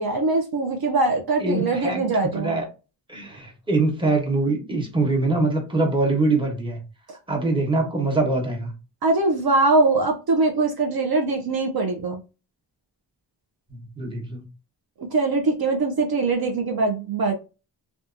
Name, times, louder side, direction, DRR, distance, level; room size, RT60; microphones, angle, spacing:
voice 1, 0.0-2.6 9.0-12.2 15.0-17.3, right 3 dB, 60° right, 0.5 m, -22 dB
voice 2, 1.4-2.1 2.3-2.7 3.1-6.8 7.3-8.7 13.7-14.4, right 2 dB, 10° right, 1.0 m, -23 dB
2.7 x 2.3 x 2.4 m
wide cardioid pair, 70°, 43 cm